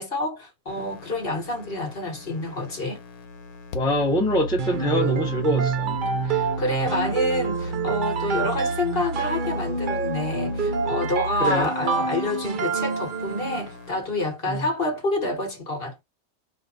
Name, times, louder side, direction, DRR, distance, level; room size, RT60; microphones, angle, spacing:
voice 1, 0.0-3.0 6.2-16.0, left 2 dB, 45° left, 1.4 m, -28 dB
sound 1, 0.7-14.0, equal, 80° left, 1.2 m, -35 dB
voice 2, 3.7-6.0 11.4-11.7 14.5-14.7, left 1 dB, 5° left, 0.8 m, -24 dB
sound 2, 4.6-13.8, right 6 dB, 45° right, 0.7 m, -28 dB
3.5 x 2.7 x 4.1 m
omnidirectional pair, 1.5 m